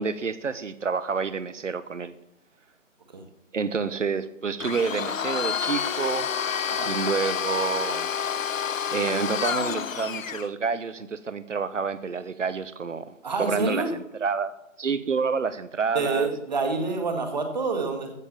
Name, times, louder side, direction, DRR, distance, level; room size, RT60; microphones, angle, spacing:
voice 1, 0.0-2.1 3.5-6.3 6.8-8.1 8.9-14.5 14.8-16.3, right 5 dB, 65° right, 15 dB, 1.1 m, -28 dB
Domestic sounds home sounds, 4.6-10.5, left 7 dB, 75° left, 0.6 m, -29 dB
voice 2, 13.2-13.9 16.0-18.1, right 4 dB, 35° right, 5 dB, 1.9 m, -27 dB
14.5 x 5.5 x 7.1 m, 0.83 s
figure-of-eight pair, 165°, 40 cm